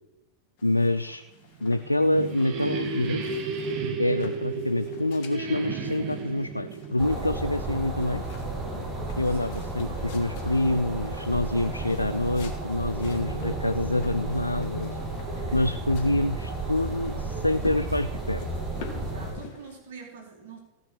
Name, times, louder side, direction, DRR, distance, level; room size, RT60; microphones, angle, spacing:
voice 1, 0.6-1.2 1.6-3.2 4.0-8.2 9.2-15.0 15.5-18.5, left 1 dB, 85° left, 11 dB, 0.4 m, -26 dB
sound 1, 0.6-19.7, left 6 dB, 45° left, 2.6 m, -49 dB
sound 2, 1.6-8.3, right 4 dB, 35° right, 2.2 m, -33 dB
sound 3, 7.0-19.3, right 2 dB, 20° right, 3.9 m, -33 dB
voice 2, 9.2-9.6 15.2-15.8 18.9-20.6, right 4 dB, 55° right, 1 dB, 3.2 m, -45 dB
16.5 x 6.0 x 7.4 m, 1.0 s
figure-of-eight pair, 90°, 0 cm